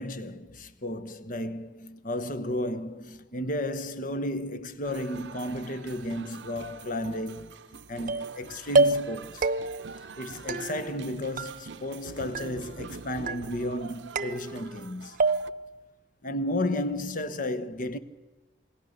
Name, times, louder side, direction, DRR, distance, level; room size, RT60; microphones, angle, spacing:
voice 1, 0.0-9.5 10.2-15.4 16.2-18.0, left 1 dB, 50° left, 1.2 m, -33 dB
sound 1, 4.8-15.5, right 5 dB, 85° right, 0.7 m, -45 dB
sound 2, 8.1-8.4 8.7-9.2 9.4-9.9 10.5-11.1 11.4-12.0 12.3-12.9 13.3-13.8 14.2-14.9 15.2-15.7, right 3 dB, 50° right, 0.8 m, -28 dB
28.0 x 20.5 x 6.7 m
head